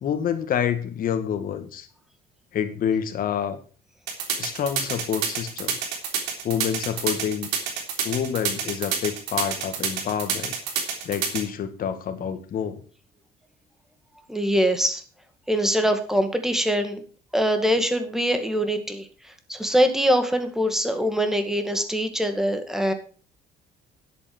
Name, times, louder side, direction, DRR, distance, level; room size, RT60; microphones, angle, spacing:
voice 1, 0.0-1.9 2.5-3.6 4.4-5.8 6.4-7.5 8.0-10.5 11.0-12.8, left 8 dB, 55° left, 8 dB, 2.1 m, -27 dB
sound 1, 4.1-11.4, right 7 dB, 85° right, 3.3 m, -27 dB
voice 2, 14.3-15.0 15.5-17.0 17.3-22.9, equal, ahead, 7 dB, 2.1 m, -23 dB
10.5 x 8.3 x 6.2 m, 0.39 s
cardioid pair, 110°, 17 cm